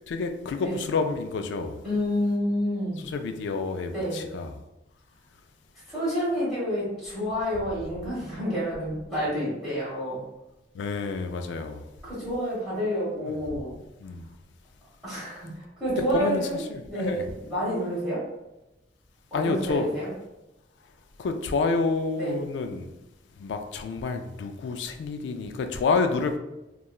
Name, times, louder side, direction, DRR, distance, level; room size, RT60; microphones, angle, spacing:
voice 1, 0.1-1.8 3.0-4.6 10.7-11.9 13.3-13.4 14.0-14.3 16.0-17.3 19.3-19.9 21.2-22.9 23.4-26.4, left 4 dB, 80° left, 6 dB, 0.3 m, -29 dB
voice 2, 1.8-3.0 3.9-4.2 5.9-10.2 12.0-13.8 15.0-18.2 19.3-20.1 22.2-22.3, equal, ahead, -10 dB, 1.3 m, -29 dB
2.9 x 2.3 x 2.3 m, 0.96 s
head